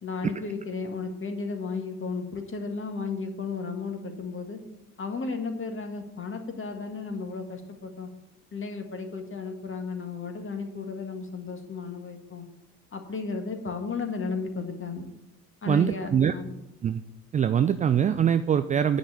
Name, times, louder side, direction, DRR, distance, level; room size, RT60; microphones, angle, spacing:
voice 1, 0.0-4.6 5.0-8.1 8.5-12.5 12.9-15.1 15.6-16.6, left 4 dB, 25° left, 5 dB, 1.7 m, -34 dB
voice 2, 15.7-16.3 16.8-17.0 17.3-19.0, right 8 dB, 20° right, 11 dB, 0.3 m, -23 dB
9.9 x 5.6 x 6.4 m, 0.86 s
figure-of-eight pair, 50°, 44 cm